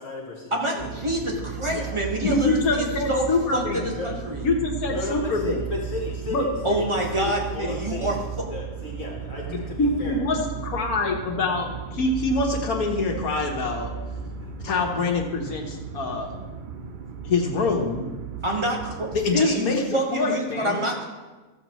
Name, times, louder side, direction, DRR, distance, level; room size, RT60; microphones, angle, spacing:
voice 1, 0.0-0.9 1.7-1.9 2.3-2.4 4.0-4.1 4.9-6.9 7.1-8.1 8.5-10.2 14.4-14.5, left 2 dB, 60° left, -2 dB, 1.7 m, -33 dB
voice 2, 0.5-4.5 6.6-8.5 18.4-21.0, right 1 dB, 20° right, -1 dB, 1.3 m, -27 dB
sound 1, 0.8-19.4, right 7 dB, 75° right, 0.4 m, -35 dB
voice 3, 2.2-3.9 4.4-5.6 6.3-6.4 9.5-13.9 14.6-16.3 17.2-18.1 19.1-19.8 20.1-20.9, left 3 dB, 80° left, 1 dB, 1.7 m, -25 dB
13.5 x 7.3 x 3.0 m, 1.2 s
omnidirectional pair, 1.5 m